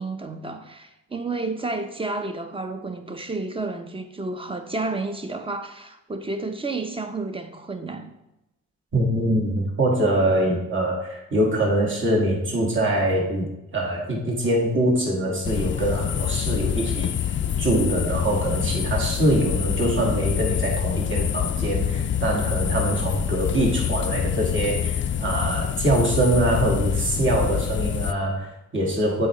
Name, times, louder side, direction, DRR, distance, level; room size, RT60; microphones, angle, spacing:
voice 1, 0.0-8.1, right 3 dB, 20° right, 0.8 m, -31 dB
voice 2, 8.9-13.5 13.7-17.1 17.6-29.3, right 1 dB, 40° right, 2.0 m, -23 dB
sound 1, 15.4-28.1, left 9 dB, 40° left, 0.4 m, -26 dB
7.9 x 4.7 x 3.2 m
cardioid pair, 65°, 30 cm